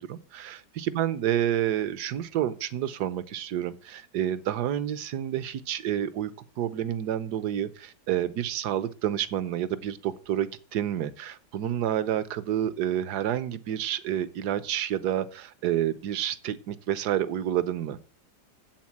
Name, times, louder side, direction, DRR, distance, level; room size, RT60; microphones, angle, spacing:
voice 1, 0.1-6.3 6.6-18.0, right 11 dB, 70° right, 1.3 m, -29 dB
8.0 x 7.5 x 7.2 m
omnidirectional pair, 1.9 m